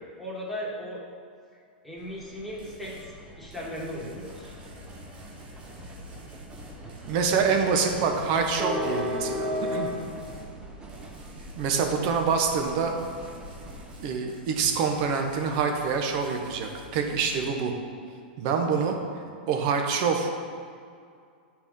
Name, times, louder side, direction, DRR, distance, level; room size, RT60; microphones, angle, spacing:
voice 1, 0.2-1.0 1.8-2.9 3.4-4.5 7.5-8.1 9.8-9.9 18.8-18.9, equal, ahead, -7 dB, 2.2 m, -37 dB
sound 1, 2.0-14.0, equal, 15° right, 1.0 m, -38 dB
sound 2, 2.6-3.1 3.5-10.5 10.9-17.4, left 1 dB, 75° right, 1.8 m, -49 dB
voice 2, 7.1-9.9 11.6-12.9 14.0-17.7 18.4-19.0 19.5-20.3, right 5 dB, 50° right, 3 dB, 1.2 m, -26 dB
9.2 x 4.7 x 5.5 m, 2.3 s
hypercardioid pair, 125°, 5 cm